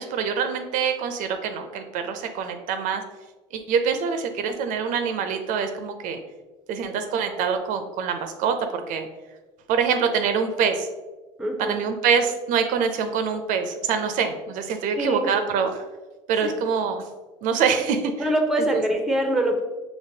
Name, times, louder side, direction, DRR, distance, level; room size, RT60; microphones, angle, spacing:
voice 1, 0.0-3.0 3.5-6.2 6.7-9.1 9.7-10.9 11.6-15.8 16.3-17.0 17.4-18.1 18.7-18.8, right 6 dB, 65° right, 7 dB, 0.5 m, -25 dB
voice 2, 11.4-11.8 14.9-15.5 16.4-16.5 18.2-19.6, right 1 dB, 5° right, 4 dB, 0.6 m, -24 dB
5.1 x 3.0 x 2.7 m, 1.2 s
supercardioid pair, 90°, 15 cm